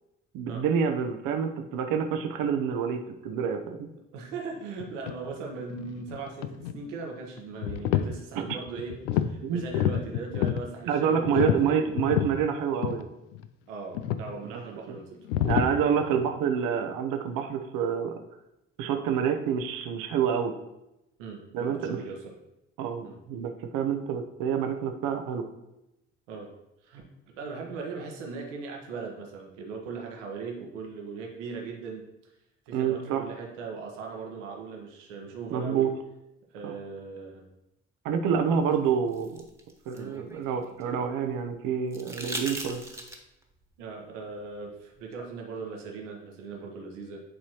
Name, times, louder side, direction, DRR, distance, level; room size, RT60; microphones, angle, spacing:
voice 1, 0.3-3.9 8.5-8.6 9.4-9.6 10.9-13.1 14.5-14.6 14.9-15.0 15.4-18.2 18.8-20.5 21.5-22.0 22.8-25.4 32.7-33.3 35.5-35.9 36.6-36.7 38.0-39.4 39.9-42.8, right 7 dB, 65° right, 6 dB, 0.8 m, -27 dB
voice 2, 4.1-12.0 13.7-15.2 15.8-16.2 21.2-22.3 23.0-23.2 26.3-26.5 26.8-27.0 27.3-32.3 32.7-35.9 36.5-37.4 39.9-40.1 43.8-47.2, right 4 dB, 80° right, 0 dB, 1.3 m, -39 dB
sound 1, 4.8-5.1 5.6-6.9 7.4-8.1 8.5-9.3 9.6-10.7 11.3-12.4 12.8-13.0 13.3-13.5 13.9-14.3 15.3-15.7, left 11 dB, 80° left, 0.5 m, -28 dB
sound 2, 38.7-41.0 41.9-43.4 45.1-45.2, right 1 dB, 5° right, 1.5 m, -40 dB
10.0 x 4.2 x 3.0 m, 0.90 s
hypercardioid pair, 50°, 36 cm